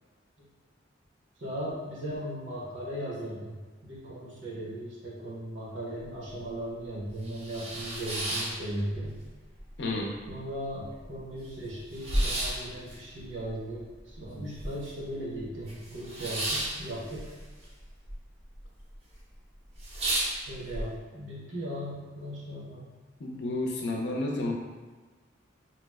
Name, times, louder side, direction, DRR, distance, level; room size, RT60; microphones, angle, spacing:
voice 1, 1.4-3.6 3.8-9.1 10.3-17.3 20.5-22.9, right 1 dB, 75° right, -6 dB, 1.0 m, -37 dB
sound 1, 6.0-6.1 6.5-6.6 7.0-9.3 9.6-10.3 10.7-10.8 10.9-15.1 15.4-18.2 18.4-19.0 19.3-19.4 19.7-20.8, right 1 dB, 35° right, 0.5 m, -33 dB
voice 2, 9.8-10.1 23.2-24.5, left 2 dB, 60° left, -1 dB, 0.5 m, -31 dB
2.8 x 2.1 x 3.4 m, 1.3 s
head